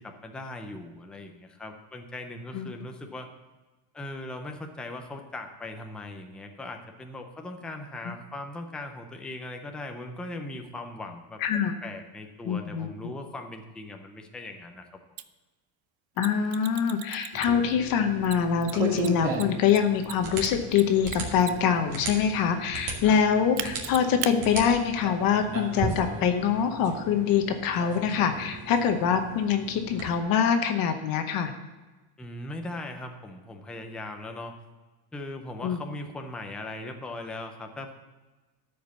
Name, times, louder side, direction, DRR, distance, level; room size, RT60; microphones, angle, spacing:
voice 1, 0.0-3.3 3.9-11.4 11.8-15.0 23.0-23.2 32.2-34.5 35.1-37.9, left 2 dB, ahead, 4 dB, 0.4 m, -39 dB
voice 2, 11.4-11.7 12.4-12.9 16.2-31.5 35.6-35.8, left 7 dB, 45° left, 7 dB, 0.9 m, -24 dB
Mechanisms, 15.2-15.3 16.2-17.7 18.2-21.8 23.6-24.3, right 15 dB, 80° right, 0.7 m, -37 dB
sound 1, 17.3-30.1, right 3 dB, 40° right, 2.5 m, -36 dB
13.0 x 5.2 x 6.9 m, 1.2 s
cardioid pair, 155°, 49 cm